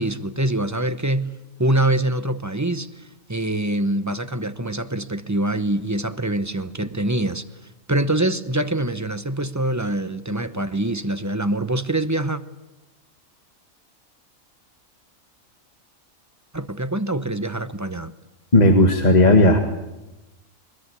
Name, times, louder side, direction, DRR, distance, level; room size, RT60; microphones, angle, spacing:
voice 1, 0.0-1.3 1.6-7.5 7.9-12.4 16.5-18.1, right 1 dB, 15° right, 0.8 m, -24 dB
voice 2, 18.5-19.6, left 1 dB, 30° left, 1.8 m, -14 dB
22.0 x 21.0 x 9.8 m
omnidirectional pair, 1.4 m